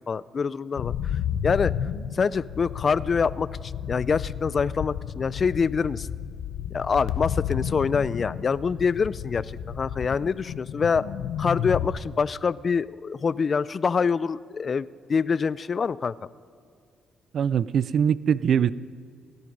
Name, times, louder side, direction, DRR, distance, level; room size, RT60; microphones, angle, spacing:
voice 1, 0.1-0.9 1.4-1.7 2.1-6.1 6.7-11.0 11.4-16.1, left 5 dB, 40° left, 19 dB, 0.3 m, -25 dB
sound 1, 0.8-11.9, left 9 dB, 80° left, 0.7 m, -32 dB
voice 2, 17.3-18.7, right 8 dB, 60° right, 19 dB, 0.3 m, -22 dB
16.5 x 10.5 x 5.3 m, 2.2 s
cardioid pair, 90°, 0 cm